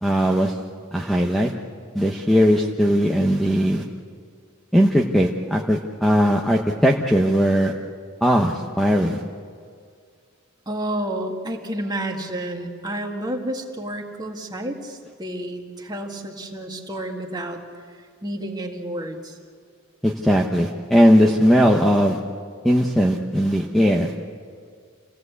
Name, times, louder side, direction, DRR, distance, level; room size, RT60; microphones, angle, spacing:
voice 1, 0.0-0.6 0.9-1.5 1.9-3.8 4.7-7.7 8.2-9.2 20.0-22.2 22.6-24.1, equal, ahead, 0 dB, 1.0 m, -18 dB
voice 2, 10.7-17.6 18.2-19.4, right 1 dB, 20° right, 1 dB, 2.0 m, -30 dB
28.0 x 17.0 x 8.3 m, 2.1 s
head